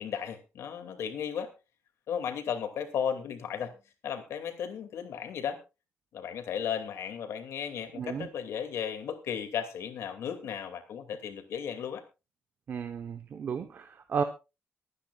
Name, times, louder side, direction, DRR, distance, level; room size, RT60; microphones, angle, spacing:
voice 1, 0.0-1.5 2.1-3.8 4.0-5.6 6.1-12.0, left 8 dB, 75° left, 6 dB, 2.6 m, -35 dB
voice 2, 7.9-8.3 12.7-14.2, right 6 dB, 45° right, 7 dB, 1.1 m, -33 dB
24.0 x 9.7 x 2.5 m, 0.28 s
wide cardioid pair, 165°, 5 cm